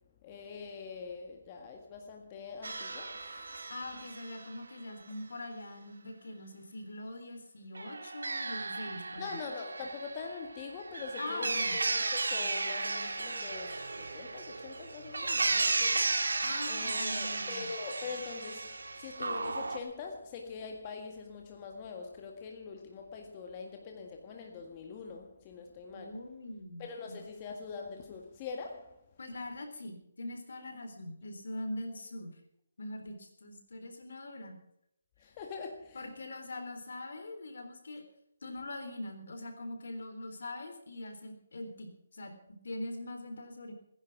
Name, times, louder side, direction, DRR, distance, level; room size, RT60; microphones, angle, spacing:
voice 1, 0.2-3.6 9.2-16.3 16.6-26.2 26.8-29.0 35.2-36.0, left 5 dB, 30° left, 2 dB, 1.7 m, -43 dB
sound 1, 2.6-4.6 7.7-19.8, right 3 dB, 85° right, 2.0 m, -34 dB
voice 2, 3.7-9.4 11.2-11.8 16.4-17.7 25.9-27.2 29.2-32.4 32.8-34.6 35.9-38.0 38.4-42.3 42.6-43.7, left 1 dB, 70° left, 5 dB, 3.7 m, -42 dB
19.5 x 10.5 x 6.1 m, 0.77 s
hypercardioid pair, 160°, 0 cm